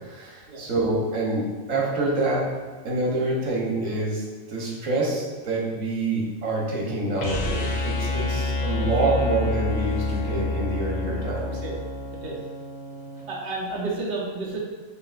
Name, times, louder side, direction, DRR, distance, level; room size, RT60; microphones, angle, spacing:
voice 1, 0.1-2.5 2.8-4.2 4.5-11.5, right 2 dB, 80° right, -3 dB, 1.4 m, -26 dB
sound 1, 7.1-13.2, left 2 dB, 60° left, 0.4 m, -28 dB
voice 2, 8.7-9.3 11.6-11.8 12.2-12.4 13.3-14.6, right 3 dB, 50° right, -4 dB, 1.1 m, -31 dB
5.6 x 3.4 x 2.4 m, 1.3 s
omnidirectional pair, 1.4 m